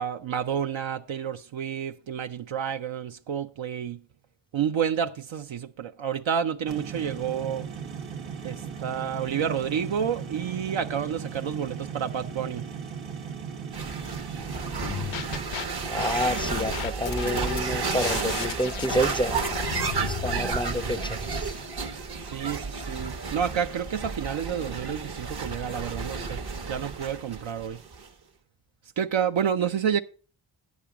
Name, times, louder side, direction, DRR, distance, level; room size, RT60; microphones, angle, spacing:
voice 1, 0.0-4.0 4.5-7.7 8.4-12.7 22.2-26.4 26.7-27.8 29.0-30.0, right 8 dB, 75° right, 0.6 m, -29 dB
sound 1, 6.7-15.5, right 7 dB, 90° right, 1.0 m, -37 dB
sound 2, 13.7-28.1, right 4 dB, 55° right, 1.0 m, -32 dB
sound 3, 14.8-15.6 16.0-20.4, left 10 dB, 75° left, 0.5 m, -35 dB
voice 2, 15.9-19.4 20.1-21.5, equal, 10° left, 0.5 m, -29 dB
9.3 x 7.4 x 4.7 m
cardioid pair, 40°, 47 cm